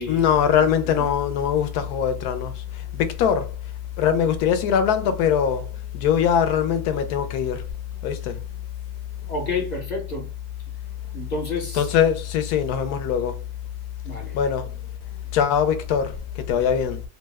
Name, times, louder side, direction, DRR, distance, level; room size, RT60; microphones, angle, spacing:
voice 1, 0.1-3.5 4.0-7.7 8.0-8.4 11.7-13.4 14.3-14.8 15.3-17.0, left 8 dB, 75° left, 1.1 m, -22 dB
voice 2, 9.3-10.3 11.1-11.8 14.0-14.4, left 3 dB, 35° left, 0.7 m, -29 dB
3.3 x 2.1 x 3.3 m
omnidirectional pair, 1.7 m